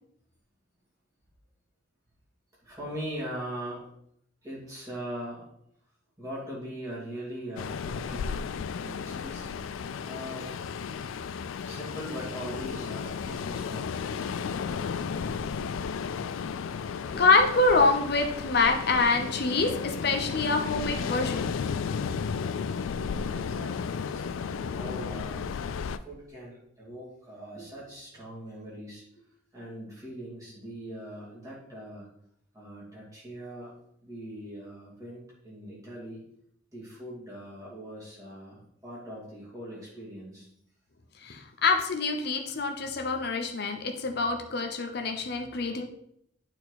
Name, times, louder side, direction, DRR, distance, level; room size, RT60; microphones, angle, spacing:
voice 1, 2.6-3.9 4.4-5.5 6.2-8.5 8.8-9.5 10.0-10.5 11.6-13.9 23.0-25.5 26.0-29.2 29.5-32.1 32.5-33.7 34.0-36.2 36.7-40.5, equal, 15° right, -7 dB, 2.8 m, -41 dB
Ocean, 7.6-26.0, left 6 dB, 75° left, 0.3 m, -34 dB
voice 2, 17.1-21.5 41.2-45.8, left 3 dB, 50° left, 3 dB, 0.7 m, -25 dB
8.7 x 4.5 x 4.1 m, 0.73 s
head